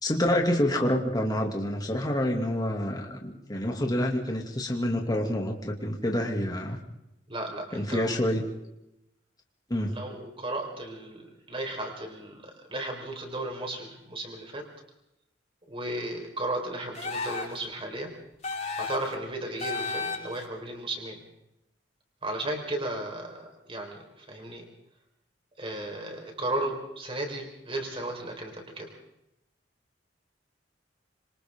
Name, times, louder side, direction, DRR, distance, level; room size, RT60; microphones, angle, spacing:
voice 1, 0.0-6.8 7.7-8.5 9.7-9.9, left 1 dB, 20° left, 1 dB, 2.7 m, -27 dB
voice 2, 7.3-8.2 9.9-14.7 15.7-18.1 18.8-21.2 22.2-24.7 25.6-28.9, right 1 dB, 30° right, 2 dB, 4.7 m, -35 dB
sound 1, 16.9-17.6 18.4-19.1 19.6-20.4, left 4 dB, 40° left, 6.0 m, -33 dB
27.0 x 25.0 x 3.8 m, 0.85 s
head